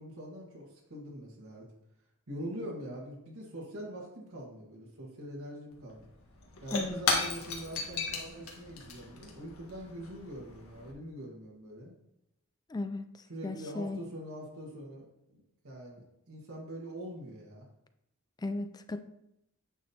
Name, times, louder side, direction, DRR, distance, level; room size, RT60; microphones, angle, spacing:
voice 1, 0.0-1.7 2.3-6.1 6.6-11.9 13.3-17.7, equal, 85° right, -3 dB, 1.8 m, -43 dB
Shatter / Crushing, 5.7-5.8 6.0-10.9, left 4 dB, 85° left, 1.5 m, -36 dB
voice 2, 6.7-7.0 12.7-14.0 18.4-19.0, left 2 dB, 20° left, 10 dB, 0.3 m, -36 dB
9.0 x 6.1 x 2.9 m, 0.81 s
head